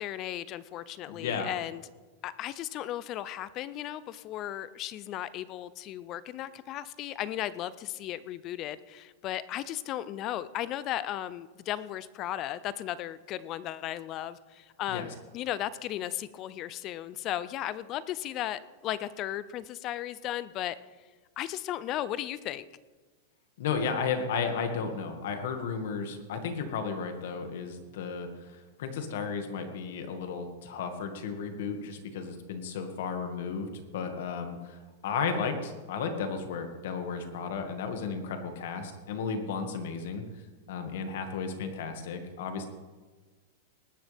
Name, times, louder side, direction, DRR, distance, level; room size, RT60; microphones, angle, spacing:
voice 1, 0.0-1.8 2.2-20.8 21.4-22.7, left 12 dB, 30° left, 17 dB, 0.4 m, -35 dB
voice 2, 1.1-1.5 14.9-15.1 23.6-40.2 40.7-42.7, left 5 dB, 70° left, 6 dB, 1.9 m, -34 dB
19.0 x 11.5 x 3.5 m, 1.3 s
supercardioid pair, 155°, 0 cm